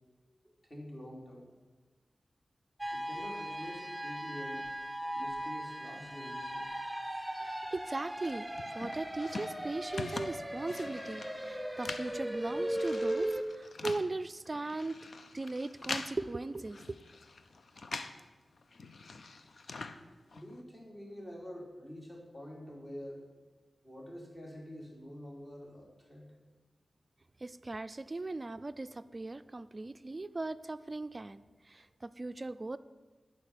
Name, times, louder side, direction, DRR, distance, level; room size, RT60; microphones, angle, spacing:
voice 1, 0.6-1.5 2.9-4.6 5.1-6.7 19.8-23.2 23.8-26.3 31.7-31.8, equal, 30° left, -2 dB, 3.0 m, -47 dB
sound 1, 2.8-13.4, right 1 dB, ahead, 0.8 m, -38 dB
voice 2, 7.4-15.0 15.3-17.0 27.4-32.8, right 2 dB, 35° right, 13 dB, 0.4 m, -39 dB
sound 2, 8.2-18.3 18.5-20.6, left 3 dB, 70° left, 0.6 m, -44 dB
11.0 x 4.8 x 8.4 m, 1.3 s
wide cardioid pair, 80°, 0 cm